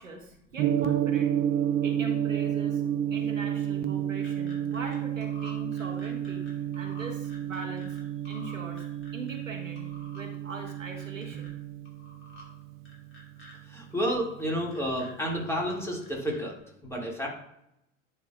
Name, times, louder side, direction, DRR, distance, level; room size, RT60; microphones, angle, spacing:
voice 1, 0.0-1.3 1.8-2.8 3.1-6.5 6.7-8.0 8.2-8.9 9.1-9.9 10.1-11.5, right 2 dB, 85° right, 3 dB, 1.1 m, -41 dB
Gong, 0.6-14.7, right 10 dB, 35° right, 0.6 m, -31 dB
sound 1, 3.9-5.0 5.2-8.0 8.3-9.5 9.8-10.2 10.6-11.5 11.9-12.4 12.9-13.5 13.9-14.2 14.5-16.6, left 1 dB, 30° left, 2.9 m, -50 dB
voice 2, 13.7-16.5 16.8-17.3, equal, 5° left, -2 dB, 1.9 m, -30 dB
10.0 x 5.7 x 2.3 m, 0.78 s
figure-of-eight pair, 75°, 38 cm